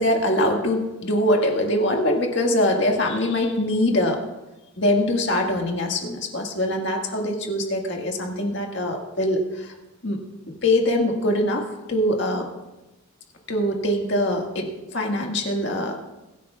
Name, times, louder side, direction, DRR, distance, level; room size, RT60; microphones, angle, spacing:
voice 1, 0.0-4.2 4.8-9.7 10.0-10.2 10.5-12.5 13.5-16.0, left 1 dB, 55° left, 1 dB, 1.8 m, -23 dB
23.5 x 10.0 x 2.4 m, 1.0 s
head